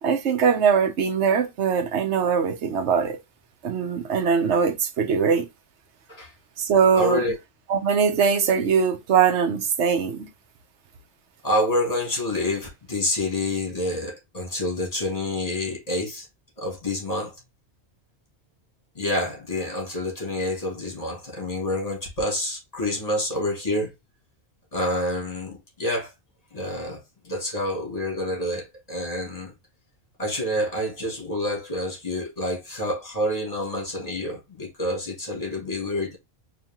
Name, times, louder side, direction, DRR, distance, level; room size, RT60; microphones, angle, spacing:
voice 1, 0.0-3.2 3.6-5.5 6.6-7.2 7.7-10.3, right 6 dB, 85° right, 1.1 m, -21 dB
voice 2, 6.9-7.4 11.4-16.3 16.6-17.3 19.0-23.9 24.7-26.1 26.5-29.5 30.2-36.2, left 1 dB, 35° left, 2.1 m, -28 dB
4.5 x 2.7 x 3.5 m
omnidirectional pair, 1.1 m